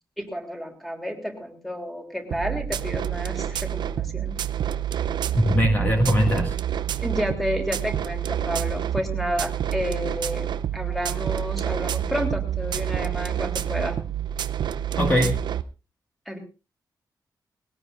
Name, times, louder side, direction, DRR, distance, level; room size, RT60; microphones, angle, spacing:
voice 1, 0.2-4.4 7.0-14.0 16.3-16.4, equal, ahead, 3 dB, 3.2 m, -31 dB
sound 1, 2.3-15.6, right 10 dB, 85° right, 0.6 m, -28 dB
voice 2, 5.3-6.5 15.0-15.4, equal, 25° left, 2 dB, 1.9 m, -20 dB
20.5 x 17.5 x 2.6 m, 0.30 s
wide cardioid pair, 145°, 7 cm